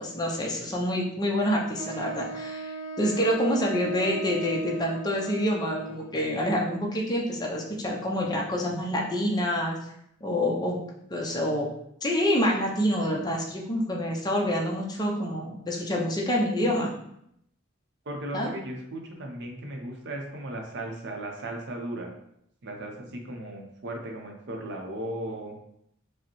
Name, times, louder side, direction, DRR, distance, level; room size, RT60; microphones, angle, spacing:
voice 1, 0.0-2.7 3.0-9.8 10.2-10.8 11.1-11.7 12.0-16.9 18.3-18.5, equal, 20° left, -1 dB, 0.6 m, -27 dB
Wind instrument woodwind instrument, 1.8-6.2, right 2 dB, 85° right, 0.8 m, -38 dB
voice 2, 18.1-22.1 22.6-25.6, right 1 dB, 55° right, 2 dB, 0.7 m, -36 dB
4.7 x 2.1 x 3.0 m, 0.75 s
head